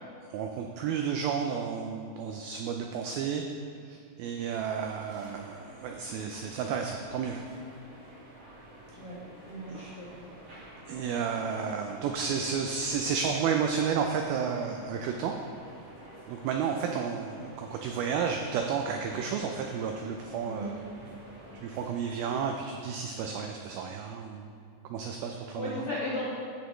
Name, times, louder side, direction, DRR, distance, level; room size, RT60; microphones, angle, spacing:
voice 1, 0.3-3.4 3.8-7.4 9.7-9.9 10.9-15.3 16.3-20.7 21.6-24.5 24.9-25.9, right 6 dB, 85° right, 3 dB, 2.1 m, -32 dB
sound 1, 4.3-22.4, right 1 dB, 55° right, 1.5 m, -50 dB
voice 2, 9.5-10.2 20.5-20.8 25.5-26.3, left 1 dB, 60° left, -9 dB, 1.5 m, -36 dB
15.0 x 6.3 x 3.1 m, 2.5 s
omnidirectional pair, 4.8 m